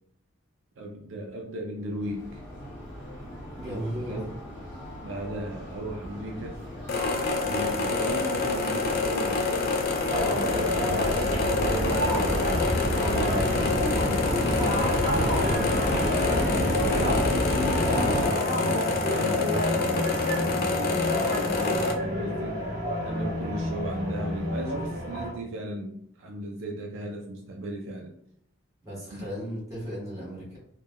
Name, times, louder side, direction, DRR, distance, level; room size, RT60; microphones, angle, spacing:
voice 1, 0.8-2.4 3.6-4.3 5.0-6.6 7.4-9.8 10.2-14.7 15.2-17.7 18.5-22.6 23.0-28.1 29.1-29.3, right 1 dB, 70° right, 0 dB, 0.4 m, -36 dB
sound 1, 2.0-18.3, equal, 10° left, 1.2 m, -31 dB
voice 2, 3.6-4.1 28.8-30.6, equal, 15° right, -7 dB, 1.2 m, -35 dB
Tape Recorder loop, 6.9-21.9, left 4 dB, 45° left, 0.4 m, -28 dB
sound 2, 10.1-25.3, equal, 45° right, 1.0 m, -30 dB
3.4 x 2.2 x 2.2 m, 0.70 s
head